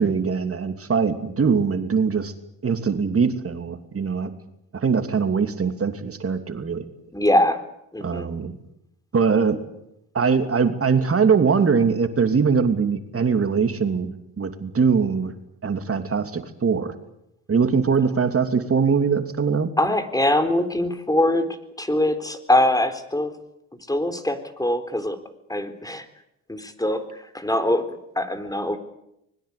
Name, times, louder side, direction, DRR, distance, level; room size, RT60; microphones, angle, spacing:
voice 1, 0.0-2.3 2.6-4.3 4.7-6.9 8.0-8.6 9.1-9.6 10.1-15.3 15.6-16.9 17.5-19.7, right 5 dB, 40° right, 8 dB, 2.9 m, -22 dB
voice 2, 7.1-7.6 7.9-8.3 19.8-21.5 21.8-23.3 23.9-25.2 25.5-26.1 26.5-27.9 28.2-28.8, left 1 dB, 10° left, 11 dB, 3.9 m, -22 dB
24.5 x 21.5 x 8.5 m, 0.82 s
supercardioid pair, 65°, 36 cm